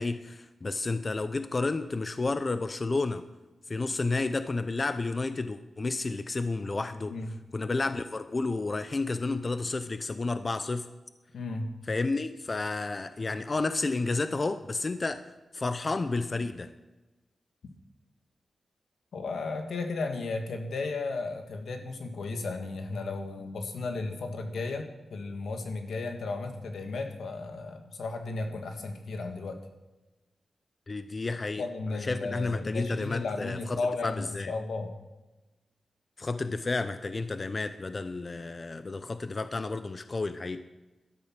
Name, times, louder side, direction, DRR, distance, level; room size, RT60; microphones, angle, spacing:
voice 1, 0.0-3.2 3.7-7.1 7.5-10.9 11.9-15.2 15.5-16.7 30.9-31.6 31.9-34.5 36.2-40.6, left 3 dB, 35° left, 11 dB, 0.6 m, -31 dB
voice 2, 11.3-11.7 19.1-29.6 31.6-35.0, left 3 dB, 85° left, 5 dB, 1.7 m, -34 dB
13.5 x 12.5 x 5.9 m, 1.1 s
wide cardioid pair, 95°, 0 cm